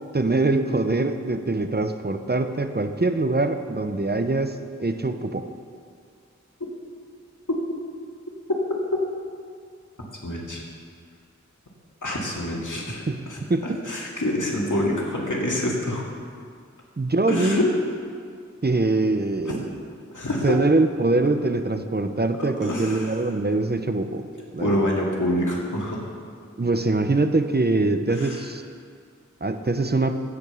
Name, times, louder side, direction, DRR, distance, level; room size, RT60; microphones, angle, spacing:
voice 1, 0.1-5.5 13.1-13.8 17.0-17.6 18.6-19.7 20.4-24.3 24.5-24.8 26.6-28.6 29.4-30.2, right 2 dB, 35° right, 8 dB, 0.6 m, -23 dB
voice 2, 10.2-10.6 12.0-16.1 17.3-17.7 19.4-19.5 20.1-20.6 22.4-23.2 24.6-26.1 28.1-28.5, left 1 dB, 85° left, -3 dB, 2.1 m, -26 dB
15.5 x 5.3 x 6.9 m, 2.2 s
wide cardioid pair, 40°, 30 cm